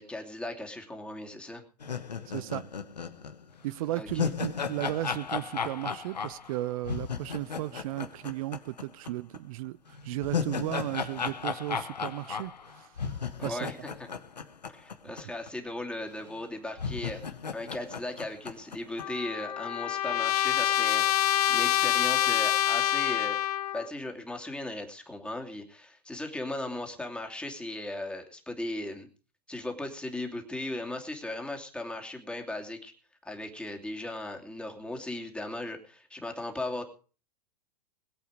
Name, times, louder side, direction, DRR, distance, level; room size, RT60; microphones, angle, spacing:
voice 1, 0.0-1.6 3.9-4.3 13.4-14.1 14.7-17.2 17.5-21.0 21.5-23.4 23.7-29.1 29.5-32.9 33.2-36.8, left 1 dB, 5° left, 2.7 m, -37 dB
sound 1, 1.8-9.1 9.3-9.4 9.9-15.2 15.5-15.6 16.3-16.4 16.8-19.0, left 6 dB, 85° left, 1.2 m, -35 dB
voice 2, 2.3-2.7 3.6-9.8 10.0-12.9 13.4-13.7, right 16 dB, 55° right, 0.6 m, -35 dB
Trumpet, 19.0-23.9, left 13 dB, 65° left, 0.6 m, -26 dB
22.0 x 8.4 x 5.0 m
hypercardioid pair, 100°, 21 cm